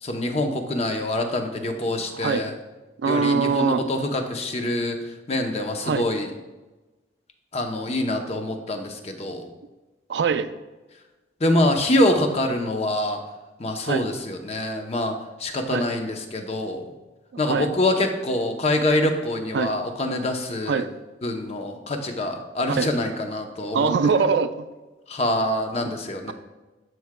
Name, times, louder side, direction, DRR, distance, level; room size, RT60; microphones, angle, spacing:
voice 1, 0.0-2.5 3.0-6.3 7.5-9.5 11.4-13.2 13.6-16.9 17.4-20.8 21.2-24.1 25.1-26.3, left 1 dB, 35° left, 4 dB, 0.7 m, -25 dB
voice 2, 3.0-3.8 5.8-6.1 10.1-10.5 13.8-14.0 15.7-15.8 17.3-17.7 19.5-19.7 20.7-20.9 22.7-22.9 23.7-24.6, right 5 dB, 80° right, 11 dB, 0.4 m, -22 dB
12.0 x 4.7 x 2.2 m, 1.1 s
head